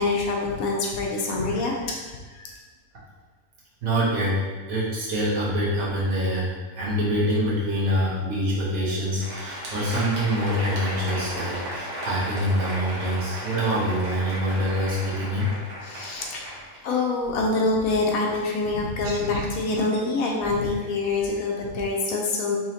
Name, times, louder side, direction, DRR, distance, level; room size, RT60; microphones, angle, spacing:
voice 1, 0.0-2.6 15.8-16.5 16.8-22.6, left 3 dB, 75° left, 0 dB, 1.0 m, -26 dB
voice 2, 3.8-15.5, equal, 60° right, -7 dB, 1.4 m, -25 dB
Crowd, 9.0-17.5, equal, 90° right, 1.4 m, -35 dB
4.1 x 2.8 x 2.8 m, 1.3 s
omnidirectional pair, 1.6 m